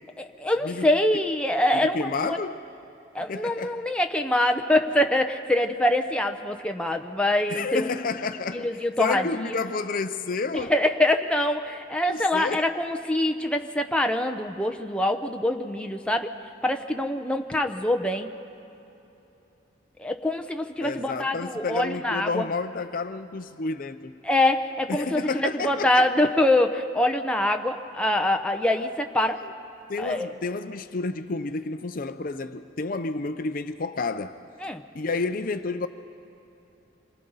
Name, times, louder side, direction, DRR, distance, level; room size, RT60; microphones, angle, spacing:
voice 1, 0.2-2.4 3.1-7.9 8.5-9.2 10.5-16.3 16.6-18.3 20.0-22.4 24.2-29.4 30.0-30.3 34.6-34.8, left 1 dB, 5° left, 0.7 m, -24 dB
voice 2, 1.7-2.6 3.3-3.9 7.5-10.7 12.1-12.7 20.8-24.2 24.9-26.1 29.2-29.5 29.9-34.4 34.9-35.9, left 3 dB, 45° left, 0.5 m, -30 dB
27.5 x 23.5 x 4.0 m
head